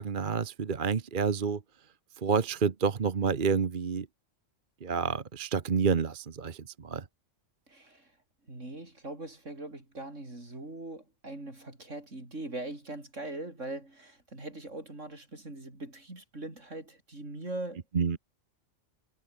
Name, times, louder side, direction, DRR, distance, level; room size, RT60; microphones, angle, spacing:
voice 1, 0.0-1.6 2.2-4.1 4.8-7.0 17.9-18.2, right 5 dB, 45° right, 1.2 m, -29 dB
voice 2, 7.7-8.1 8.5-17.8, right 2 dB, 75° right, 6.3 m, -41 dB
omnidirectional pair, 1.3 m